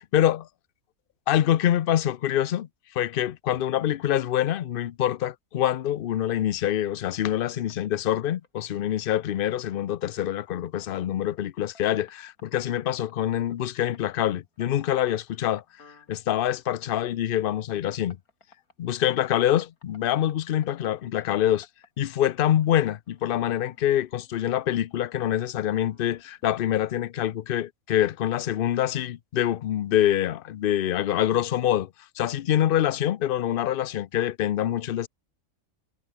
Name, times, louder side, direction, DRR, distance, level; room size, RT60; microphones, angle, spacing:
voice 1, 1.3-2.7 3.0-15.6 16.1-18.2 18.8-21.7 22.0-31.9 32.2-35.1, left 11 dB, 60° left, 0.6 m, -25 dB
sound 1, 7.7-18.7 19.0-20.3 20.6-27.1, left 4 dB, 90° left, 3.4 m, -58 dB
omnidirectional pair, 1.5 m